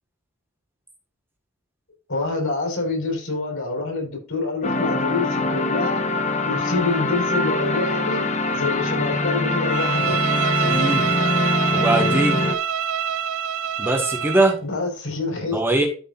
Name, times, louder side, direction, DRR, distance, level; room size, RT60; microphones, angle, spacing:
voice 1, 2.1-6.0 6.4-10.2 14.6-15.6, left 3 dB, 75° left, 0 dB, 4.7 m, -26 dB
sound 1, 4.6-12.6, left 2 dB, 35° left, 0.7 m, -23 dB
Bowed string instrument, 9.7-14.6, right 8 dB, 85° right, 0.7 m, -25 dB
voice 2, 10.6-11.1 11.7-12.4 13.8-14.6 15.5-15.9, right 2 dB, 10° right, 2 dB, 1.7 m, -21 dB
13.0 x 5.3 x 2.6 m, 0.37 s
head